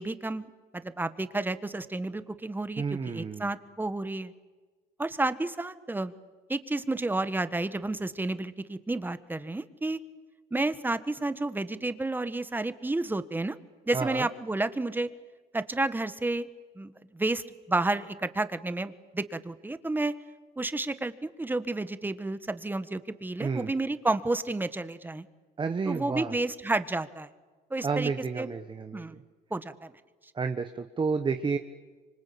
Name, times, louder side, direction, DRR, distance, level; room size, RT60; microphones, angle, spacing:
voice 1, 0.0-4.3 5.0-6.1 6.5-10.0 10.5-13.6 13.9-15.1 15.5-16.5 16.8-20.1 20.6-25.2 25.8-27.3 27.7-28.1 28.4-28.5 28.9-29.2 29.5-29.9, right 2 dB, 10° right, 12 dB, 1.4 m, -31 dB
voice 2, 2.8-3.5 13.9-14.3 23.4-23.7 25.6-26.3 27.8-29.2 30.3-31.6, right 5 dB, 30° right, 7 dB, 1.4 m, -30 dB
25.5 x 25.5 x 8.6 m, 1.3 s
cardioid pair, 110°, 17 cm